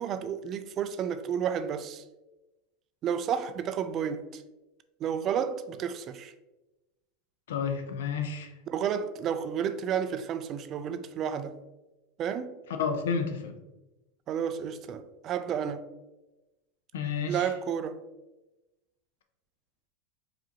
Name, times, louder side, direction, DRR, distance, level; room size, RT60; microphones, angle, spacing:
voice 1, 0.0-2.0 3.0-4.4 5.0-6.3 8.7-11.6 12.2-12.6 14.3-15.9 17.3-18.0, right 8 dB, 40° right, 0.3 m, -31 dB
voice 2, 7.5-8.5 12.8-13.6 16.9-17.5, left 6 dB, 85° left, 0.6 m, -30 dB
4.8 x 2.6 x 2.9 m
supercardioid pair, 120°, 0 cm